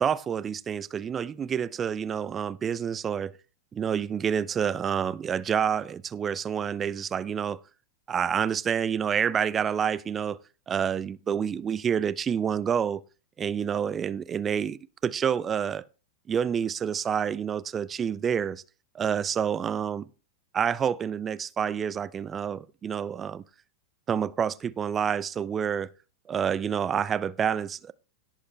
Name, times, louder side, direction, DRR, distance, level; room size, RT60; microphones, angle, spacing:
voice 1, 0.0-3.3 3.7-7.6 8.1-10.4 10.7-13.0 13.4-15.8 16.3-18.6 18.9-20.1 20.5-23.4 24.1-25.9 26.3-27.9, right 8 dB, 25° right, 0.5 m, -28 dB
17.5 x 7.4 x 3.2 m
figure-of-eight pair, 90°, 0 cm